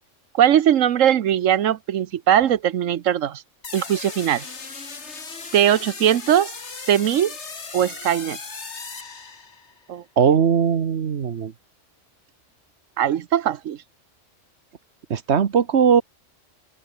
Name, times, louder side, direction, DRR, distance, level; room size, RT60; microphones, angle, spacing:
voice 1, 0.3-3.4 3.7-4.5 5.5-6.5 6.9-7.3 7.7-8.4 9.9-10.0 13.0-13.8, right 10 dB, 85° right, 1.2 m, -20 dB
sound 1, 3.6-9.8, left 4 dB, 60° left, 2.4 m, -37 dB
voice 2, 10.2-11.5 15.1-16.0, right 7 dB, 60° right, 1.4 m, -19 dB
open air
omnidirectional pair, 1.3 m